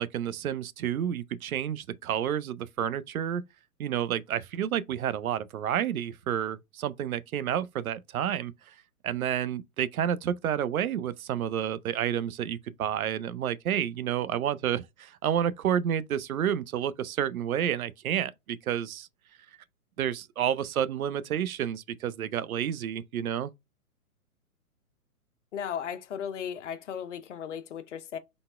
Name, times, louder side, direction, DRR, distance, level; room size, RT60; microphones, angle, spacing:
voice 1, 0.0-3.5 3.8-8.5 9.0-19.1 20.0-23.5, right 9 dB, 70° right, 0.5 m, -30 dB
voice 2, 25.5-28.2, left 8 dB, 55° left, 0.7 m, -36 dB
4.0 x 3.4 x 2.3 m
figure-of-eight pair, 125°, 44 cm